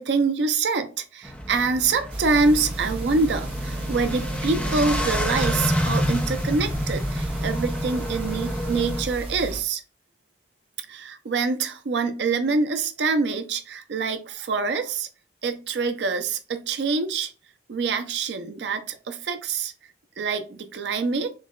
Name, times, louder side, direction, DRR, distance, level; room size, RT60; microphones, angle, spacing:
voice 1, 0.0-9.8 10.9-15.1 15.4-17.3 17.7-19.7 20.2-21.3, right 4 dB, 85° right, 0.5 m, -25 dB
sound 1, 1.2-9.0, equal, 5° left, 0.6 m, -28 dB
sound 2, 2.1-9.6, right 1 dB, 30° right, 1.2 m, -34 dB
6.2 x 2.2 x 2.3 m
head